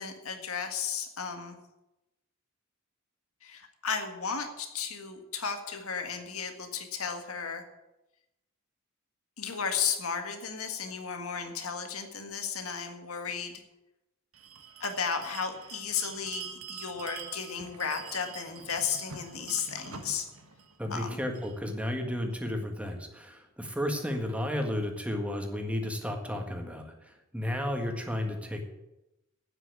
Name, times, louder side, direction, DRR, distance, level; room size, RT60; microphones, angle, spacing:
voice 1, 0.0-1.6 3.4-7.7 9.4-13.6 14.8-20.3 20.9-21.2, left 6 dB, 80° left, 6 dB, 1.8 m, -34 dB
Bell, 14.3-21.6, right 7 dB, 85° right, 1.4 m, -45 dB
voice 2, 20.8-28.6, left 1 dB, 5° right, 3 dB, 1.6 m, -33 dB
9.2 x 8.2 x 9.5 m, 0.95 s
head